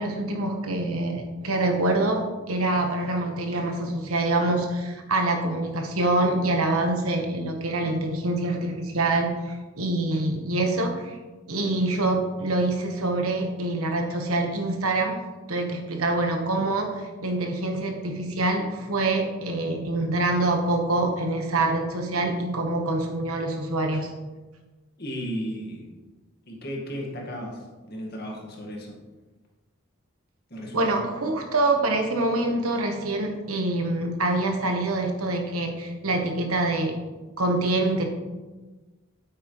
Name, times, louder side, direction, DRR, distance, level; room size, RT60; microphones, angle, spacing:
voice 1, 0.0-11.2 11.5-15.2 15.5-24.1 30.7-37.0 37.4-38.0, right 2 dB, 85° right, 3 dB, 1.4 m, -25 dB
voice 2, 25.0-25.9 26.5-29.0 30.5-30.9, equal, 45° left, -1 dB, 1.9 m, -34 dB
9.0 x 8.3 x 3.2 m, 1.2 s
head